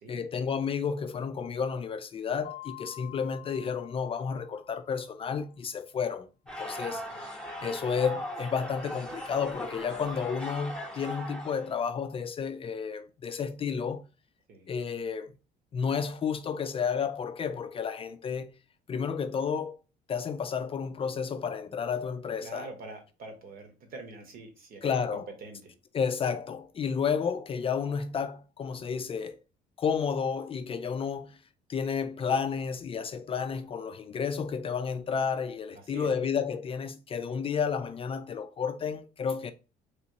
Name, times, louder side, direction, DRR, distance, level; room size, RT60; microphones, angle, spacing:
voice 1, 0.1-6.3 6.6-14.1 14.7-15.3 15.7-18.5 18.9-19.8 20.1-22.7 24.8-25.2 25.9-29.4 29.8-31.4 31.7-39.5, left 6 dB, 35° left, 0.3 m, -31 dB
Mallet percussion, 2.4-5.1, left 18 dB, 75° left, 0.6 m, -48 dB
koncert marcin, 6.5-11.8, equal, 5° left, 0.9 m, -39 dB
voice 2, 22.4-25.7 35.7-36.2, right 3 dB, 60° right, 1.3 m, -45 dB
3.4 x 2.8 x 2.8 m
cardioid pair, 110°, 17 cm